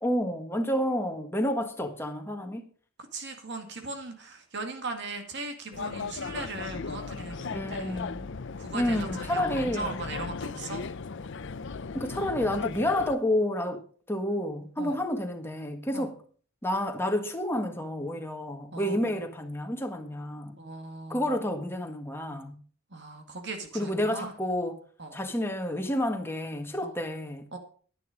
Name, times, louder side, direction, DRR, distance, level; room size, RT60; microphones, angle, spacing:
voice 1, 0.0-2.7 7.5-8.3 8.7-10.0 11.9-16.2 16.6-20.6 21.1-22.6 23.7-24.8 25.1-27.5, left 1 dB, 10° left, 1.6 m, -30 dB
voice 2, 3.1-8.1 8.6-10.8 14.8-15.0 15.9-16.1 18.7-19.0 20.6-21.4 22.9-24.3 25.0-25.2 26.8-26.9 27.5-27.6, right 3 dB, 55° right, 2.1 m, -39 dB
sound 1, 5.7-13.1, left 5 dB, 60° left, 0.6 m, -36 dB
11.0 x 11.0 x 5.1 m
head